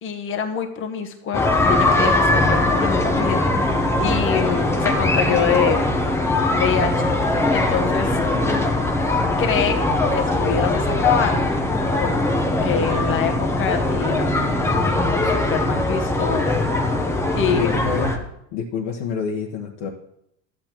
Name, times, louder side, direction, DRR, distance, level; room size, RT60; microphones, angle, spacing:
voice 1, 0.0-3.7 4.0-5.8 6.5-7.1 7.5-8.2 9.4-9.8 10.1-11.5 12.0-12.2 12.6-14.3 14.9-16.6 17.4-17.7, left 7 dB, 30° left, 5 dB, 1.1 m, -25 dB
sound 1, 1.3-18.2, left 2 dB, 5° left, 0.7 m, -21 dB
voice 2, 17.5-18.2 18.5-19.9, left 5 dB, 60° left, -1 dB, 1.2 m, -27 dB
13.5 x 8.2 x 3.0 m, 0.77 s
supercardioid pair, 150°, 42 cm